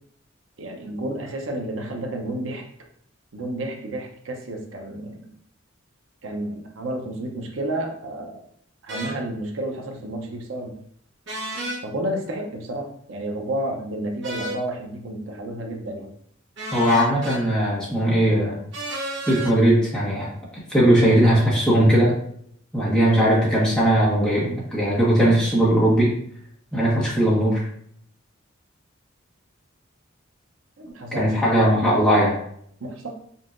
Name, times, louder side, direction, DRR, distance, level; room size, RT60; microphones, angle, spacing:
voice 1, 0.6-2.7 3.3-5.3 6.2-8.4 8.8-10.7 11.8-16.1 30.8-31.3 32.8-33.1, right 1 dB, 85° right, 2 dB, 0.7 m, -31 dB
sound 1, 8.9-9.1 11.3-11.8 14.2-14.6 16.6-17.4 18.7-19.5, right 1 dB, 65° right, 1.0 m, -31 dB
voice 2, 16.7-18.6 19.3-20.3 20.7-22.2 22.7-26.1 26.7-27.6 31.1-32.4, right 1 dB, 5° left, -7 dB, 1.3 m, -19 dB
5.4 x 2.8 x 2.5 m, 0.66 s
head